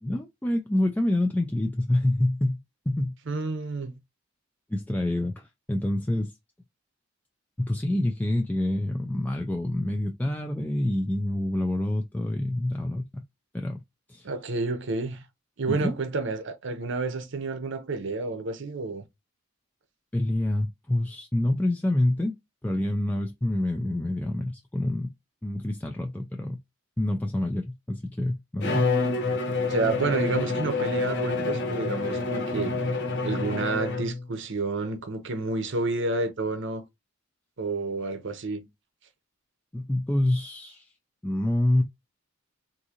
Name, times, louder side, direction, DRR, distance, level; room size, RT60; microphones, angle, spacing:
voice 1, 0.0-2.6 2.9-3.1 4.7-6.3 7.6-13.2 13.5-13.8 14.1-14.3 15.7-16.0 20.1-22.3 22.6-25.1 25.4-26.6 27.0-28.9 39.7-40.9 41.2-41.8, left 1 dB, 10° left, 0.3 m, -27 dB
voice 2, 3.3-3.9 14.2-15.2 15.6-19.0 29.7-32.8 33.2-36.8 37.6-38.7, right 3 dB, 60° right, 0.7 m, -30 dB
Bowed string instrument, 28.6-34.2, left 3 dB, 60° left, 0.9 m, -27 dB
3.7 x 2.6 x 2.8 m
head